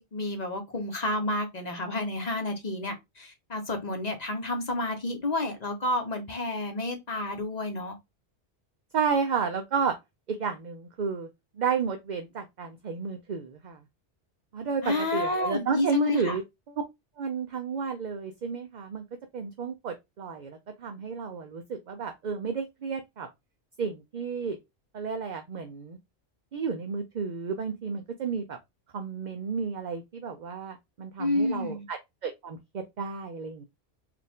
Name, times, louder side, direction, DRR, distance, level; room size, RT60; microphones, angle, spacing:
voice 1, 0.0-8.0 14.8-16.4 31.2-31.8, left 2 dB, 40° left, 1.0 m, -30 dB
voice 2, 8.9-9.9 10.3-11.3 11.6-13.8 14.5-16.4 17.2-19.0 19.3-23.3 23.8-24.6 24.9-26.0 26.5-28.6 28.9-33.6, right 5 dB, 50° right, 0.6 m, -32 dB
4.7 x 2.5 x 3.5 m
omnidirectional pair, 1.2 m